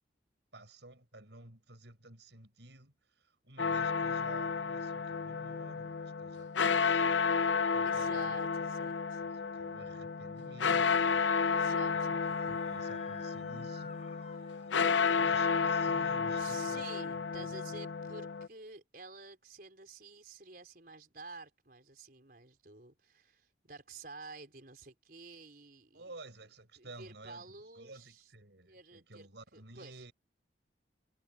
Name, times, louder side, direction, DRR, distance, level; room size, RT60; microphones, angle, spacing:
voice 1, 0.5-8.4 9.2-11.7 12.1-12.2 12.5-14.4 14.8-17.6 25.9-30.1, right 2 dB, 75° right, 5.3 m, -53 dB
sound 1, 3.6-18.5, left 5 dB, 90° left, 0.6 m, -32 dB
voice 2, 7.8-9.2 11.5-12.2 14.3-14.5 16.4-26.1 26.8-28.3 28.7-29.3 29.5-30.0, right 3 dB, 50° right, 4.9 m, -51 dB
Screaming, 12.2-15.0, left 6 dB, 35° left, 5.2 m, -54 dB
head